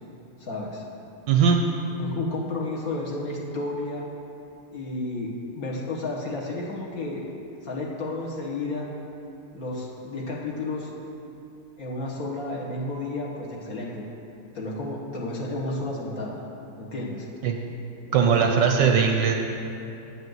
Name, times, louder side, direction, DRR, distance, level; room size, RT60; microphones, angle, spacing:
voice 1, 0.4-0.8 1.9-4.0 4.7-7.2 7.6-8.9 9.5-10.9 11.8-14.1 14.5-16.4 16.8-17.3 18.1-18.3, left 2 dB, 45° left, -4 dB, 1.7 m, -32 dB
voice 2, 1.3-1.6 17.4-17.6 18.1-19.4, right 6 dB, 70° right, 3 dB, 1.2 m, -19 dB
9.9 x 5.3 x 7.9 m, 2.8 s
omnidirectional pair, 2.3 m